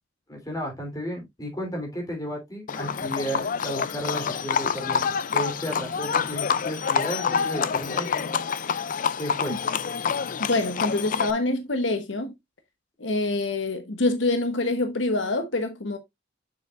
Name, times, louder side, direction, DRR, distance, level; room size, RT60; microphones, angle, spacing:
voice 1, 0.3-5.0 5.3-8.3 9.2-9.6, equal, 20° left, 3.3 m, -33 dB
Livestock farm animals working animals, 2.7-11.3, left 6 dB, 45° left, 0.4 m, -27 dB
voice 2, 10.4-12.3 13.0-16.0, left 2 dB, 75° left, 1.1 m, -26 dB
7.0 x 6.9 x 2.5 m
head